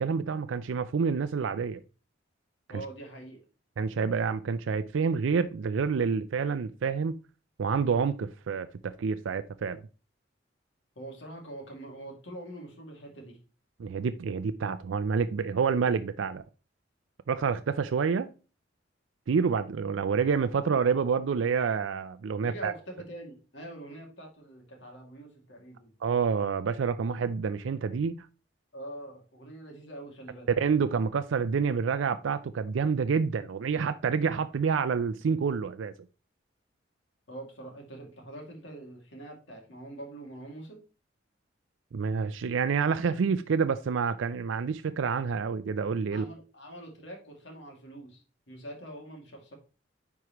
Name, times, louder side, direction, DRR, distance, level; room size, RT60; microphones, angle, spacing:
voice 1, 0.0-1.8 3.8-7.2 7.6-9.8 13.8-16.4 17.3-18.3 19.3-22.7 26.0-28.1 30.6-35.9 41.9-46.3, right 5 dB, 85° right, 0.4 m, -28 dB
voice 2, 2.7-3.4 11.0-13.4 22.4-25.9 28.7-30.5 37.3-40.8 46.1-49.6, right 1 dB, 70° left, 2.3 m, -44 dB
9.5 x 4.7 x 3.0 m
head